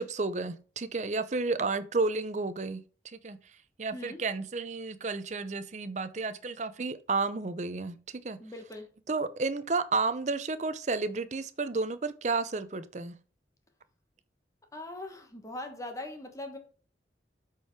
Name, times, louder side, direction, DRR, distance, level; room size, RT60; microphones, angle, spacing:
voice 1, 0.0-3.4 3.8-8.4 9.1-13.2, right 3 dB, 40° right, 0.6 m, -32 dB
voice 2, 8.4-8.9 14.7-16.6, left 1 dB, 20° left, 1.2 m, -41 dB
8.1 x 4.6 x 4.6 m
head